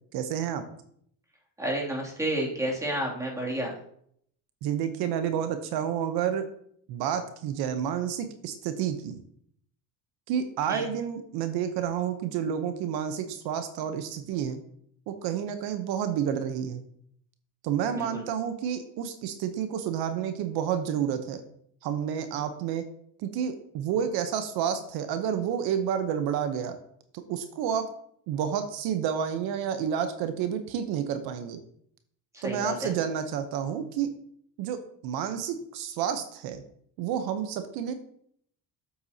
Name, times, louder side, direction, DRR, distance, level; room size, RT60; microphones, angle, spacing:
voice 1, 0.1-0.6 4.6-6.5 6.9-9.2 10.3-14.6 15.1-16.8 17.6-21.4 21.8-22.9 23.2-26.8 27.1-27.9 28.3-31.6 32.4-34.1 34.6-36.6 37.0-37.9, right 8 dB, 85° right, 9 dB, 0.9 m, -30 dB
voice 2, 1.6-3.7 10.7-10.8 17.9-18.2 32.4-32.9, right 1 dB, 10° right, -3 dB, 2.7 m, -30 dB
8.0 x 8.0 x 2.8 m, 0.67 s
cardioid pair, 110°, 37 cm